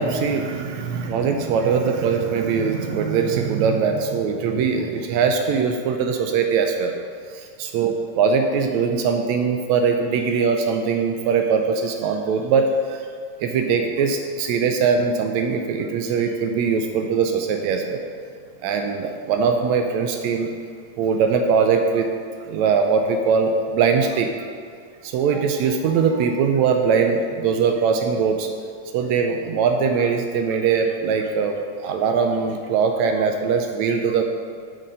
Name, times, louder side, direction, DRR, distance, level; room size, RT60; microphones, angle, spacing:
voice 1, 0.0-7.0 7.3-13.1 13.4-18.1 18.6-20.5 21.0-22.1 22.4-24.5 25.0-28.5 28.9-34.2, right 5 dB, 80° right, 4 dB, 1.7 m, -21 dB
6.8 x 6.2 x 5.4 m, 2.1 s
omnidirectional pair, 3.4 m